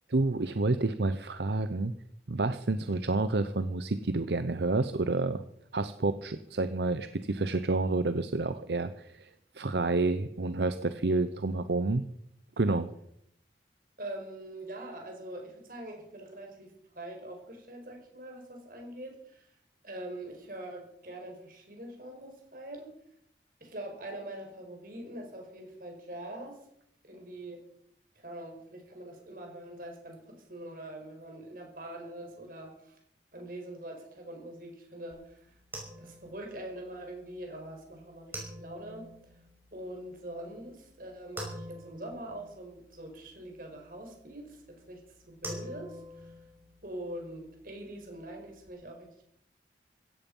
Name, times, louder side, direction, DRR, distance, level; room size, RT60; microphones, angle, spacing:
voice 1, 0.1-1.9 2.3-5.4 5.7-9.3 9.5-12.1 12.6-12.9, right 2 dB, 75° right, 11 dB, 0.8 m, -29 dB
voice 2, 14.0-19.5 19.8-22.9 23.6-26.6 27.0-27.6 28.2-33.0 33.3-35.4 36.0-39.1 39.7-46.3 46.8-49.2, right 1 dB, 50° right, 2 dB, 5.3 m, -43 dB
sound 1, 35.1-48.7, right 1 dB, 10° right, 5.5 m, -48 dB
16.5 x 14.0 x 5.5 m, 0.74 s
head